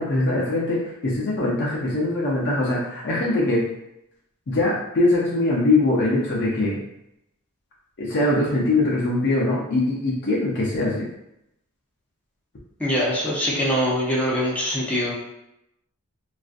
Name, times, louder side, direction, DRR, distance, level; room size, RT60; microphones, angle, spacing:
voice 1, 0.0-3.6 4.5-6.8 8.0-11.1, left 2 dB, 50° left, -4 dB, 0.5 m, -22 dB
voice 2, 12.8-15.1, equal, 5° left, -5 dB, 0.6 m, -23 dB
2.4 x 2.3 x 2.4 m, 0.84 s
head